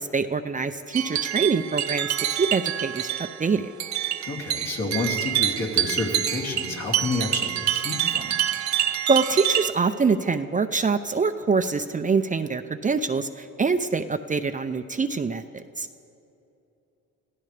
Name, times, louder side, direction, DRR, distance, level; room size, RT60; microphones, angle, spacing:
voice 1, 0.0-3.1 3.4-3.7 8.8-15.9, right 4 dB, 25° right, 8 dB, 0.6 m, -25 dB
sound 1, 0.9-9.7, right 11 dB, 65° right, 0.9 m, -27 dB
voice 2, 4.3-8.4, left 3 dB, 60° left, -2 dB, 3.0 m, -29 dB
24.5 x 16.0 x 3.4 m, 2.9 s
cardioid pair, 90°, 30 cm